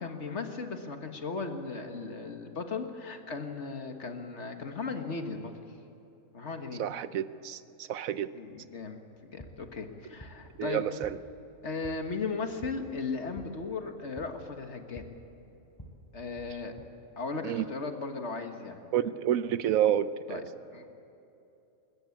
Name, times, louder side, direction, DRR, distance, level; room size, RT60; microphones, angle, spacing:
voice 1, 0.0-5.5 6.3-6.8 8.3-9.0 9.3-10.9 11.6-15.1 16.1-16.7 17.2-18.8 20.3-20.4 20.7-20.8, left 4 dB, 55° left, 5 dB, 1.8 m, -36 dB
voice 2, 6.8-8.3 10.6-11.2 17.4-17.6 18.9-20.4, right 10 dB, 80° right, 14 dB, 1.1 m, -29 dB
sound 1, 9.1-16.8, equal, 15° left, 3.9 m, -52 dB
21.0 x 20.5 x 8.6 m, 2.8 s
omnidirectional pair, 1.4 m